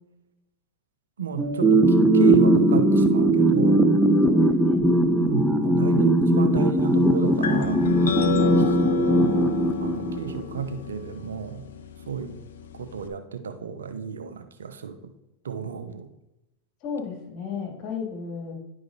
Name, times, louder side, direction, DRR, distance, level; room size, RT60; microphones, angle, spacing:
voice 1, 1.2-3.9 5.1-7.9 8.7-9.5 9.8-11.7 12.1-12.4 12.7-15.1 15.4-16.1, right 6 dB, 85° right, 9 dB, 0.8 m, -32 dB
sound 1, 1.4-5.1, left 3 dB, 20° right, 3.0 m, -38 dB
sound 2, 1.6-10.6, right 1 dB, ahead, 0.7 m, -19 dB
voice 2, 4.3-4.8 8.4-8.5 16.8-18.5, left 6 dB, 45° left, 0 dB, 2.7 m, -34 dB
sound 3, 7.4-13.1, left 5 dB, 75° left, 0.7 m, -31 dB
10.5 x 5.1 x 4.0 m, 0.92 s
hypercardioid pair, 100°, 0 cm